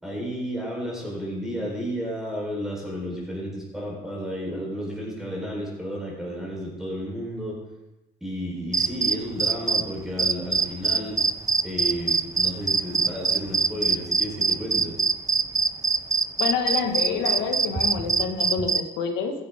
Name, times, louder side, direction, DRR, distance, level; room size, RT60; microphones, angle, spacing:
voice 1, 0.0-7.6 8.2-11.2 11.6-15.0, equal, 5° right, -3 dB, 4.4 m, -32 dB
sound 1, 8.7-9.8 10.2-18.8, right 4 dB, 20° right, 0.5 m, -23 dB
voice 2, 16.4-19.3, left 6 dB, 85° left, 5 dB, 1.8 m, -27 dB
14.5 x 11.0 x 3.8 m, 0.97 s
cardioid pair, 110°, 17 cm